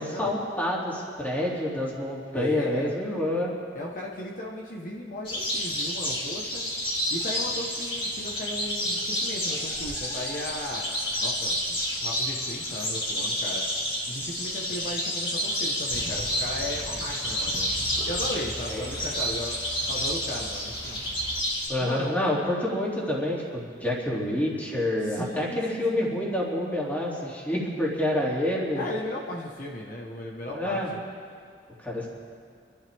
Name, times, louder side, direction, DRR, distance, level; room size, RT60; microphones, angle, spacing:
voice 1, 0.0-3.5 18.7-18.9 21.7-28.8 30.5-30.9 31.8-32.1, left 1 dB, 10° left, -5 dB, 2.8 m, -28 dB
voice 2, 2.3-2.9 3.7-6.7 7.1-10.8 11.2-13.6 14.1-17.7 18.0-19.6 19.9-21.0 21.8-22.1 25.0-26.0 28.7-31.0, left 1 dB, 50° left, -2 dB, 1.4 m, -36 dB
sound 1, 5.2-21.7, equal, 30° left, 2.9 m, -30 dB
sound 2, 15.9-21.4, right 1 dB, 30° right, 0.8 m, -41 dB
26.5 x 12.0 x 3.6 m, 2.1 s
head